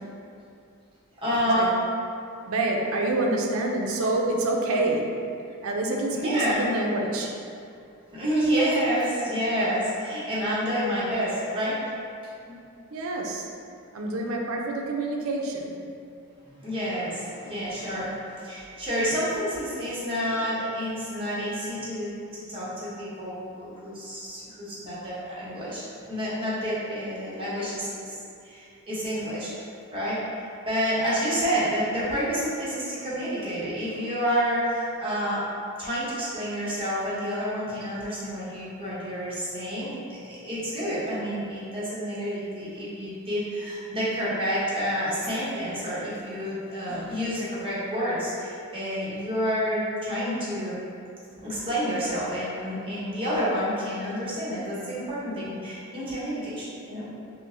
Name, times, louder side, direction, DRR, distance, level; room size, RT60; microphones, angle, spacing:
voice 1, 1.2-1.8 6.1-6.6 8.1-11.9 12.4-12.6 16.6-28.1 28.4-29.5 29.9-35.4 35.8-50.8 51.4-57.1, equal, 25° right, -9 dB, 1.0 m, -29 dB
voice 2, 2.5-5.1 5.6-7.3 12.9-13.5 13.9-15.7, right 2 dB, 65° right, 0 dB, 0.5 m, -27 dB
5.4 x 2.0 x 2.6 m, 2.5 s
head